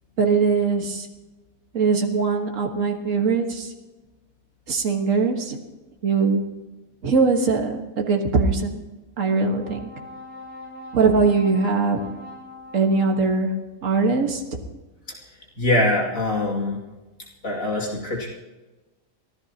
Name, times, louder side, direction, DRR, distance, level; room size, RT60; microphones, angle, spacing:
voice 1, 0.2-1.1 1.7-3.7 4.7-5.6 6.0-6.4 7.0-8.8 9.2-9.9 10.9-12.0 12.7-13.5 13.8-14.6, right 4 dB, 60° right, 2 dB, 2.0 m, -21 dB
Brass instrument, 9.2-13.6, left 2 dB, 50° left, 6.1 m, -42 dB
voice 2, 15.6-16.8 17.4-18.3, left 2 dB, 65° left, -2 dB, 3.0 m, -23 dB
24.0 x 16.0 x 3.0 m, 1.1 s
omnidirectional pair, 1.6 m